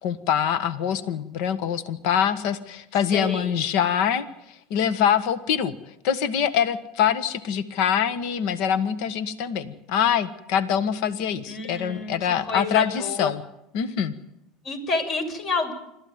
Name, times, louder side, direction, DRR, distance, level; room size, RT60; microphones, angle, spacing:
voice 1, 0.0-5.7 6.0-13.4 13.7-14.1, left 8 dB, 70° left, 13 dB, 1.5 m, -24 dB
voice 2, 3.1-3.5 11.5-13.3 14.6-15.7, left 3 dB, 50° left, 6 dB, 6.0 m, -29 dB
26.5 x 13.5 x 9.6 m, 0.84 s
hypercardioid pair, 95°, 0 cm